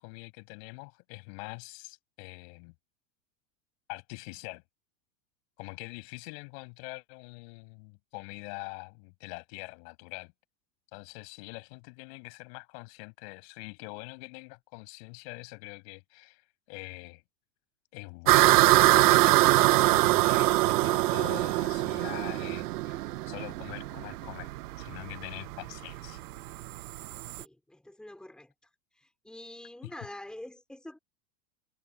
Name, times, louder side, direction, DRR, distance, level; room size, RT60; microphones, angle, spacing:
voice 1, 0.0-2.7 3.9-4.6 5.6-10.3 10.9-16.4 16.7-17.2 17.9-26.2 29.8-29.9, left 34 dB, 40° left, 7.2 m, -44 dB
sound 1, 18.3-27.4, right 17 dB, 70° right, 1.0 m, -23 dB
voice 2, 27.3-28.5 28.9-31.0, left 1 dB, ahead, 4.9 m, -46 dB
supercardioid pair, 175°, 48 cm